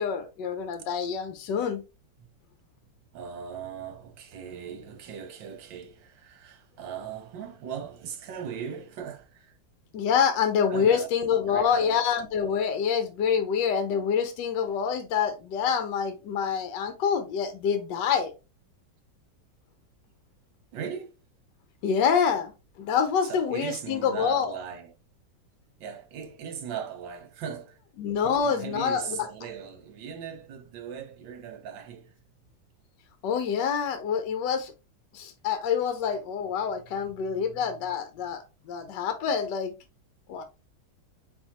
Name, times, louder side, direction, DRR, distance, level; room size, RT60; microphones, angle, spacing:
voice 1, 0.0-1.8 9.9-18.3 21.8-22.5 22.8-24.6 28.0-29.3 33.2-34.7 35.1-38.4 38.7-39.7 40.3-40.4, left 7 dB, 75° left, 1.3 m, -26 dB
voice 2, 3.1-9.5 10.7-11.1 11.5-12.0 20.7-21.1 23.2-24.9 25.8-27.8 28.2-32.1 37.3-37.5, right 7 dB, 85° right, 1.7 m, -39 dB
4.2 x 4.1 x 2.9 m
omnidirectional pair, 2.0 m